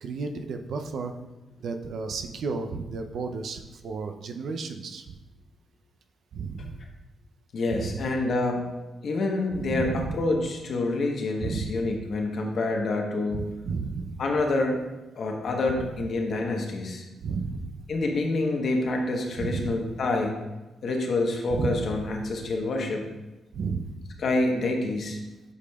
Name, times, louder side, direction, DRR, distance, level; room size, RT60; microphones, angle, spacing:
voice 1, 0.0-1.1 1.6-5.0 6.3-6.7 7.7-8.0 9.7-10.2 11.4-11.8 13.3-14.2 15.8-15.9 17.2-17.8 19.4-19.7 21.5-21.9 23.5-23.9, right 4 dB, 70° right, 6 dB, 0.5 m, -32 dB
voice 2, 7.5-8.6 9.0-13.5 14.2-14.8 15.2-17.0 17.9-20.4 20.8-23.1 24.2-25.2, left 2 dB, 65° left, 2 dB, 1.0 m, -27 dB
8.3 x 5.0 x 2.3 m, 1.1 s
cardioid pair, 75°, 0 cm